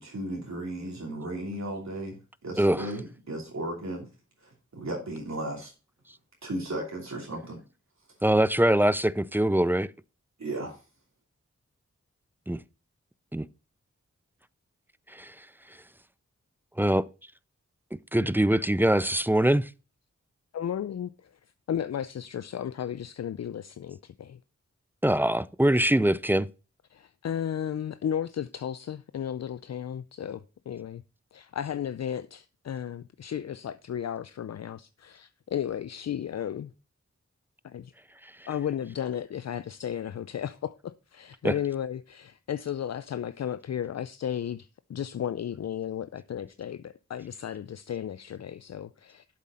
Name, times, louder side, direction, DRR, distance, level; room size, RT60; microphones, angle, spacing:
voice 1, 0.0-4.1 4.4-5.7 6.4-7.6 10.4-10.8, right 1 dB, 65° right, 2.8 m, -35 dB
voice 2, 8.2-9.9 12.5-12.6 13.3-13.5 15.1-15.3 16.8-17.0 18.1-19.7 25.0-26.5 41.4-41.5, right 1 dB, 5° right, 0.4 m, -23 dB
voice 3, 20.5-21.3 21.7-24.4 26.9-31.0 31.3-36.7 37.6-37.9 38.5-49.2, left 9 dB, 65° left, 0.4 m, -34 dB
7.6 x 7.5 x 4.2 m
wide cardioid pair, 60°, 29 cm